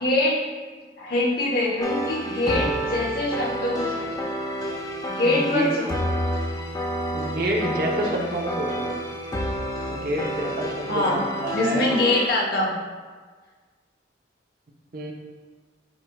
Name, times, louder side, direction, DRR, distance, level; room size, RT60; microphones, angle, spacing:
voice 1, 0.0-0.4 1.0-4.3 5.1-5.9 10.9-11.2 11.5-12.8, left 2 dB, 50° left, -2 dB, 1.1 m, -24 dB
sound 1, 1.8-12.3, equal, 20° left, 0.5 m, -29 dB
voice 2, 5.2-5.7 7.1-8.9 9.9-11.9 14.9-15.1, right 1 dB, 50° right, -1 dB, 0.8 m, -28 dB
8.9 x 4.6 x 2.3 m, 1.5 s
head